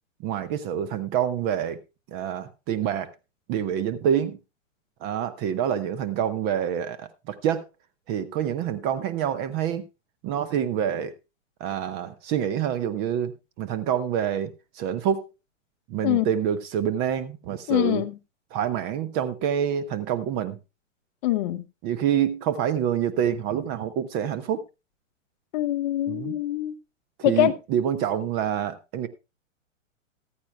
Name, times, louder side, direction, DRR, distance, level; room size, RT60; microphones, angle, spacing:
voice 1, 0.2-1.8 2.1-3.1 3.5-4.4 5.0-7.7 8.1-9.9 10.2-11.1 11.6-15.3 15.9-18.0 18.5-20.6 21.8-24.6 26.1-26.4 27.2-29.1, right 9 dB, 25° right, 0.8 m, -27 dB
voice 2, 17.7-18.1 21.2-21.6 25.5-26.7 27.2-27.6, left 15 dB, 35° left, 0.8 m, -24 dB
14.0 x 14.0 x 2.3 m
figure-of-eight pair, 110°, 39 cm